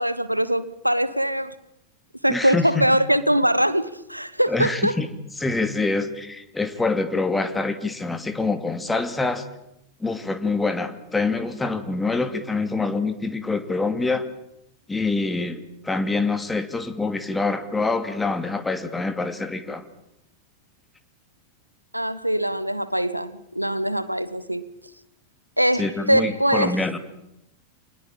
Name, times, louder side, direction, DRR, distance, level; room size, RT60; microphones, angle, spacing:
voice 1, 0.0-1.5 2.2-5.0 21.9-24.7 25.6-26.8, equal, 90° right, 1.1 m, -22 dB
voice 2, 2.3-2.9 4.5-5.1 5.4-9.4 10.0-14.3 14.9-19.8 25.8-27.0, left 3 dB, 10° left, 2.5 m, -25 dB
26.5 x 20.0 x 8.9 m
figure-of-eight pair, 90°, 0 cm